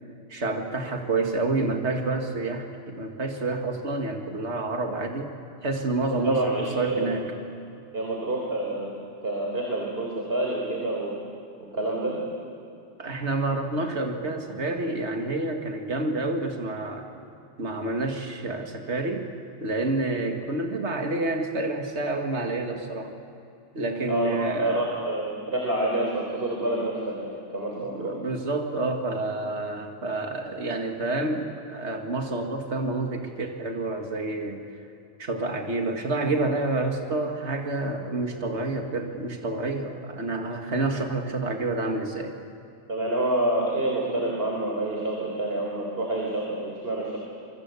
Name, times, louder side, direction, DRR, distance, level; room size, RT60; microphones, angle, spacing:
voice 1, 0.3-5.3 5.6-7.3 13.0-17.1 17.6-19.3 19.6-23.2 23.7-24.8 27.8-34.6 35.2-42.3, right 2 dB, 75° right, 3 dB, 2.3 m, -28 dB
voice 2, 6.1-7.3 7.9-8.9 9.2-11.2 11.7-12.2 24.1-28.2 42.9-47.2, right 1 dB, 55° right, -2 dB, 4.2 m, -28 dB
26.5 x 24.0 x 8.4 m, 2.7 s
omnidirectional pair, 1.2 m